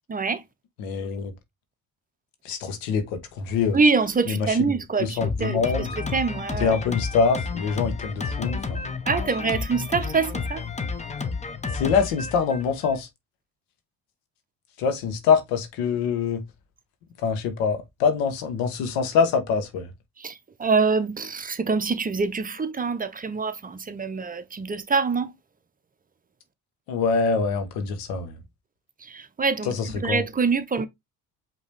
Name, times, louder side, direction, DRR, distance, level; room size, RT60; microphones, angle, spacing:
voice 1, 0.1-0.4 3.7-6.8 9.1-10.6 20.2-25.3 29.0-29.7 30.0-30.9, right 4 dB, 25° right, 0.7 m, -25 dB
voice 2, 0.8-1.3 2.4-3.8 4.3-4.5 5.0-5.9 6.6-9.0 11.7-13.1 14.8-16.4 17.2-19.9 26.9-28.4 29.7-30.2, left 5 dB, 90° left, 1.2 m, -24 dB
Drum kit, 5.2-13.0, left 4 dB, 20° left, 0.8 m, -31 dB
5.3 x 3.0 x 3.3 m
supercardioid pair, 80°, 35 cm